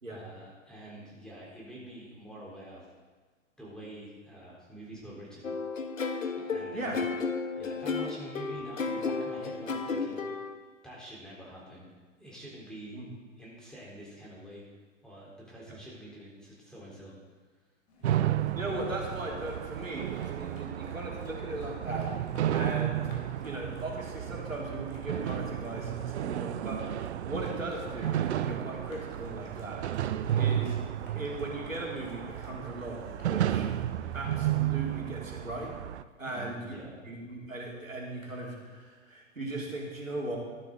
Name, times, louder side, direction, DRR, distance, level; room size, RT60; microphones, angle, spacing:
voice 1, 0.1-2.9 3.6-5.5 6.4-6.9 7.6-10.2 10.8-11.9 12.2-13.0 13.4-14.6 15.0-17.1 34.0-34.3 36.2-36.9, right 1 dB, ahead, -6 dB, 3.9 m, -46 dB
sound 1, 5.4-10.5, left 4 dB, 80° left, 1.1 m, -33 dB
sound 2, 17.9-34.6, left 1 dB, 40° left, 3.6 m, -56 dB
sound 3, 18.0-36.0, right 11 dB, 60° right, 0.6 m, -32 dB
voice 2, 18.6-22.1 22.5-23.1 23.4-27.0 27.2-30.0 30.4-30.8 31.2-33.7 34.1-35.7 36.2-36.6 37.0-40.4, right 1 dB, 85° right, -2 dB, 2.9 m, -38 dB
13.0 x 11.5 x 3.9 m, 1.4 s
figure-of-eight pair, 105°, 39 cm